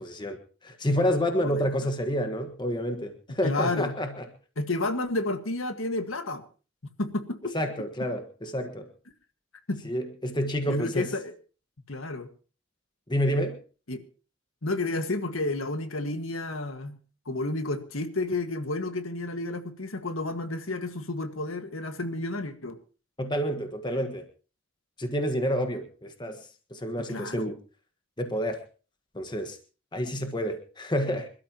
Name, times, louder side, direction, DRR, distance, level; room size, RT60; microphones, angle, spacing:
voice 1, 0.0-4.3 7.5-8.9 9.8-11.1 13.1-13.6 23.2-24.2 25.0-27.6 28.2-28.6 29.1-29.6 29.9-31.3, equal, 20° left, 6 dB, 1.5 m, -29 dB
voice 2, 1.3-1.7 3.4-3.9 4.6-6.4 7.0-7.6 9.7-9.8 10.7-11.3 11.9-12.3 13.9-14.0 14.6-17.0 17.3-22.8 27.1-27.5, left 2 dB, 80° left, 8 dB, 1.7 m, -31 dB
26.0 x 12.5 x 3.0 m, 0.36 s
head